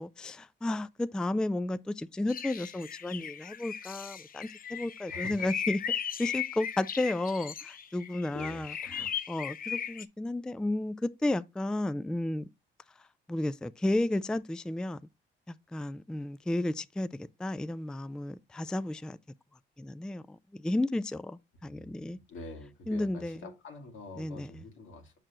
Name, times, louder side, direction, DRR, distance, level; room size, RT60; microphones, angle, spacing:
voice 1, 0.0-5.8 6.2-12.5 13.3-15.0 15.5-19.2 19.8-22.2 22.9-23.4 24.2-24.6, left 1 dB, 5° left, 0.3 m, -33 dB
sound 1, 2.3-10.0, left 8 dB, 45° left, 0.7 m, -37 dB
voice 2, 5.1-5.5 8.3-9.1 21.6-25.1, left 2 dB, 80° left, 2.0 m, -46 dB
6.7 x 6.0 x 3.0 m
cardioid pair, 90°, 20 cm